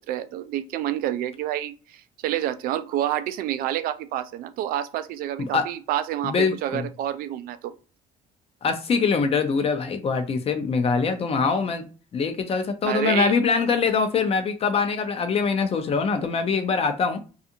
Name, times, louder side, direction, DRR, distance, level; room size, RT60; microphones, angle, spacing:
voice 1, 0.1-6.3 6.6-7.7 12.9-13.3, right 12 dB, 70° right, 0.4 m, -28 dB
voice 2, 6.2-6.9 8.6-11.8 12.1-17.2, left 5 dB, 40° left, 0.6 m, -23 dB
2.5 x 2.4 x 2.8 m
cardioid pair, 100°, 15 cm